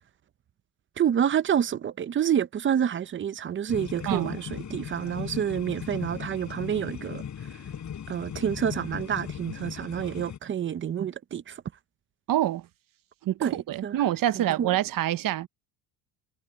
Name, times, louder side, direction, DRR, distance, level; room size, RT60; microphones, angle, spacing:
voice 1, 1.0-7.2 8.1-11.6 13.4-14.0 14.3-14.7, right 9 dB, 25° right, 0.6 m, -28 dB
sound 1, 3.7-10.4, left 8 dB, 40° left, 4.0 m, -38 dB
voice 2, 4.1-4.4 12.3-12.7 13.2-15.5, right 13 dB, 45° right, 0.9 m, -26 dB
cardioid pair, 125°, 46 cm